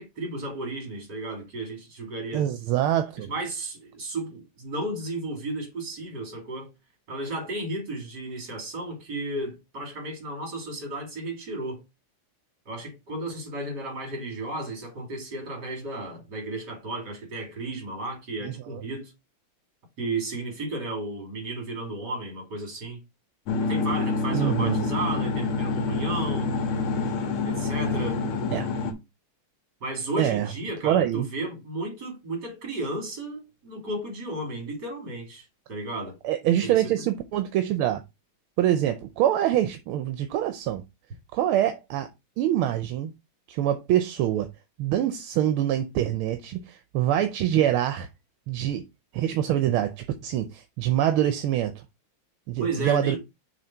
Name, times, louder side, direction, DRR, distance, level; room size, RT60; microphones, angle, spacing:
voice 1, 0.0-2.5 3.2-6.7 7.1-11.8 12.7-19.1 20.0-23.0 23.6-26.5 27.4-28.2 29.8-36.2 36.6-36.9 52.6-53.2, right 2 dB, 50° right, 3.4 m, -33 dB
voice 2, 2.3-3.3 18.4-18.8 24.3-24.9 28.5-28.7 30.2-30.5 30.8-31.3 36.2-38.0 38.6-40.8 41.3-42.1 42.4-43.1 43.5-44.5 44.8-48.1 48.5-48.8 49.1-51.8 52.5-53.2, right 11 dB, 80° right, 1.5 m, -25 dB
sound 1, 23.5-28.9, left 4 dB, 90° left, 2.1 m, -27 dB
6.6 x 3.4 x 4.5 m
omnidirectional pair, 2.3 m